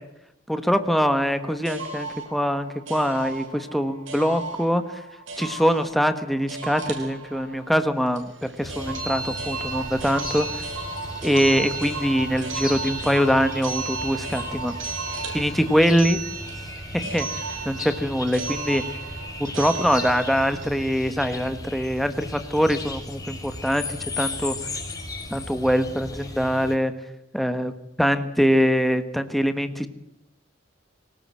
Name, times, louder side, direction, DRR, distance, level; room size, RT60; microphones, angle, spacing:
voice 1, 0.5-4.8 5.4-10.6 11.2-14.7 15.3-16.2 16.9-17.3 17.6-18.8 19.4-23.9 24.2-24.5 25.3-26.9 27.3-27.7 28.0-29.9, equal, ahead, 9 dB, 1.5 m, -23 dB
sound 1, 1.0-20.7, right 3 dB, 75° right, 6.2 m, -34 dB
sound 2, 8.6-26.8, left 2 dB, 20° left, 5.7 m, -36 dB
25.0 x 18.5 x 7.7 m, 0.87 s
head